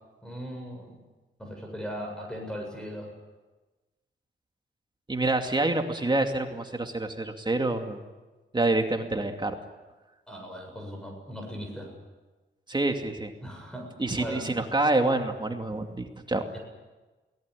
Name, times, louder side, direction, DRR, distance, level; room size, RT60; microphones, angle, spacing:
voice 1, 0.2-1.0 1.4-3.1 10.3-11.9 13.4-14.5 16.5-16.6, equal, 5° left, 2 dB, 7.5 m, -38 dB
voice 2, 5.1-8.0 8.5-9.5 12.7-13.3 14.0-16.5, right 2 dB, 20° right, 4 dB, 2.5 m, -27 dB
23.0 x 19.0 x 9.9 m, 1.2 s
cardioid pair, 90°, 20 cm